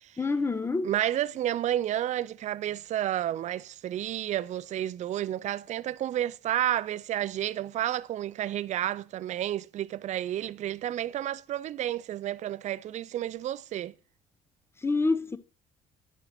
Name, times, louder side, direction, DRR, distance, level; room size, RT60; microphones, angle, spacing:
voice 1, 0.2-0.9 14.8-15.4, left 3 dB, 15° left, 0.6 m, -27 dB
voice 2, 0.8-13.9, right 12 dB, 45° right, 0.4 m, -31 dB
9.7 x 4.3 x 5.8 m
cardioid pair, 110°, 17 cm